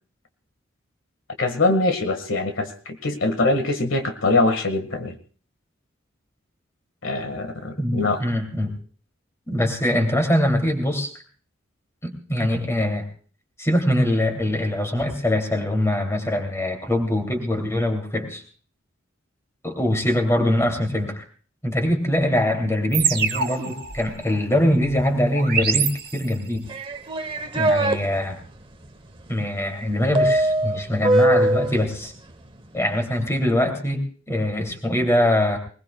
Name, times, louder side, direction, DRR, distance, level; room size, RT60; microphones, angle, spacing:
voice 1, 1.4-5.1 7.0-8.2, left 2 dB, 75° left, 7 dB, 1.8 m, -23 dB
voice 2, 7.8-8.7 9.5-11.1 12.0-13.1 13.6-18.4 19.6-21.2 21.6-26.7 27.5-28.4 29.3-32.1 32.7-35.6, left 1 dB, 15° left, 4 dB, 2.8 m, -23 dB
sound 1, 22.9-26.6, right 7 dB, 50° right, 1.4 m, -27 dB
sound 2, 26.7-28.0 30.1-31.8, right 1 dB, 25° right, 1.0 m, -20 dB
21.5 x 20.5 x 2.3 m, 0.40 s
head